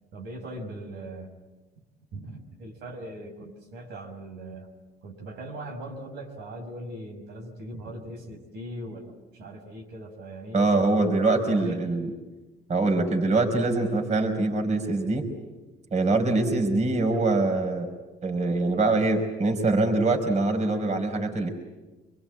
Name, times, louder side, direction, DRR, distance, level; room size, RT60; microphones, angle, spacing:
voice 1, 0.1-1.4 2.1-4.8 5.0-11.2 11.6-11.8, right 1 dB, 85° right, 2 dB, 5.8 m, -40 dB
voice 2, 10.5-12.1 12.7-15.2 15.9-17.9 18.2-21.5, right 2 dB, 40° right, 4 dB, 5.2 m, -24 dB
27.0 x 22.5 x 9.0 m, 1.1 s
cardioid pair, 110°, 17 cm